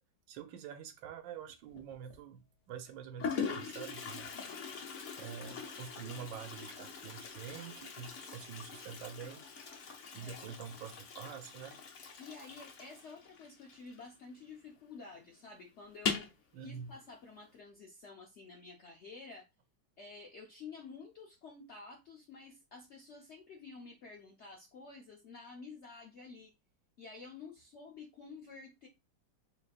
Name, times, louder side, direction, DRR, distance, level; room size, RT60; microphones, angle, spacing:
voice 1, 0.3-9.4 10.1-11.8 16.5-16.9, right 8 dB, 75° right, 1.4 m, -47 dB
Toilet flush, 1.7-2.2 2.9-3.0 3.2-14.5 14.7-14.8 15.1-15.2 15.9-16.4, left 6 dB, 55° left, 0.9 m, -42 dB
voice 2, 10.2-10.5 12.2-16.3 16.6-19.5 20.0-26.5 27.0-28.9, left 4 dB, 75° left, 0.6 m, -51 dB
3.7 x 3.3 x 2.4 m
omnidirectional pair, 2.0 m